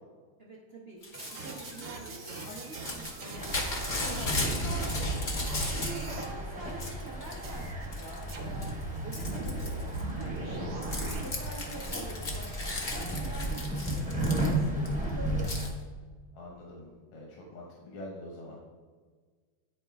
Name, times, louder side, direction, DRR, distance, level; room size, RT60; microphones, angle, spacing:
voice 1, 0.4-5.1 5.4-8.7 9.0-10.9 11.2-15.6, right 2 dB, 75° right, -4 dB, 0.5 m, -46 dB
Crumpling crinkling / Tearing, 1.0-6.3 6.6-7.4 7.9-8.3 8.6-14.9 15.4-15.7, left 1 dB, 60° left, 0.5 m, -36 dB
sound 1, 1.1-5.1 5.4-6.3 7.4-7.9 8.3-11.2, right 3 dB, 55° right, 1.2 m, -40 dB
sound 2, 3.4-15.7, right 1 dB, 10° right, 0.4 m, -35 dB
voice 2, 16.3-18.6, left 1 dB, 85° left, -2 dB, 1.9 m, -45 dB
9.6 x 4.1 x 3.4 m, 1.5 s
omnidirectional pair, 2.3 m